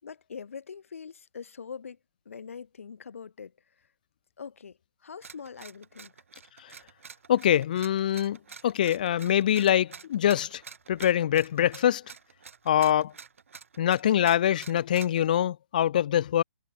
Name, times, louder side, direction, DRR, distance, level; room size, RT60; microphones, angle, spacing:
voice 1, 0.0-2.0 2.2-3.9 4.4-6.1, left 6 dB, 65° left, 6.3 m, -43 dB
sound 1, 5.2-15.3, right 6 dB, 60° right, 6.4 m, -48 dB
voice 2, 7.3-8.4 8.6-10.6 10.9-12.0 12.7-13.1 13.8-16.4, left 11 dB, 35° left, 0.9 m, -24 dB
hypercardioid pair, 170°, 8 cm